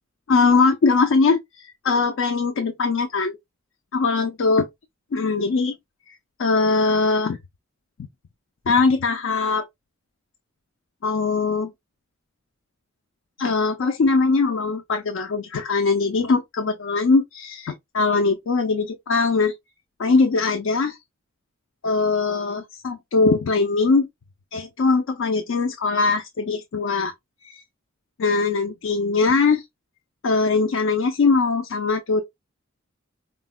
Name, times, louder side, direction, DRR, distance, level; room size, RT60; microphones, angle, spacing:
voice 1, 0.3-3.4 3.9-4.7 5.1-5.7 6.4-7.4 8.7-9.6 11.0-11.7 13.4-19.5 20.0-21.0 21.8-24.1 24.5-27.1 27.4-27.6 28.2-29.6 30.2-32.2, left 4 dB, 65° left, 0.4 m, -21 dB
3.7 x 2.1 x 2.2 m
head